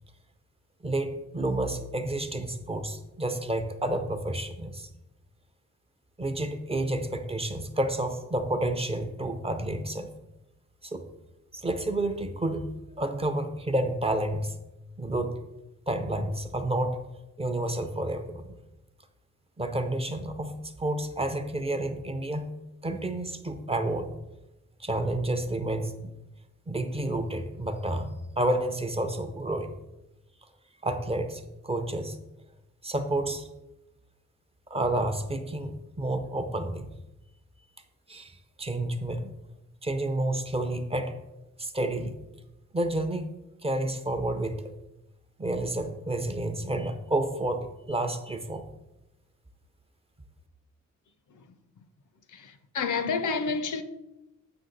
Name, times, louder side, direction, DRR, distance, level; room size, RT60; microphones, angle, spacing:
voice 1, 0.8-4.9 6.2-10.1 10.8-11.1 11.5-14.5 15.0-15.4 15.9-17.0 17.4-18.6 19.6-22.5 22.8-24.1 24.8-26.1 26.7-29.7 30.8-32.2 32.8-33.5 34.7-36.9 38.1-39.3 39.8-41.2 41.6-42.2 42.7-43.3 43.6-44.6 45.4-48.6, right 1 dB, 20° right, 0.5 m, -30 dB
voice 2, 52.3-53.8, left 5 dB, 90° left, 0.7 m, -30 dB
7.7 x 5.6 x 3.9 m
wide cardioid pair, 155°, 30 cm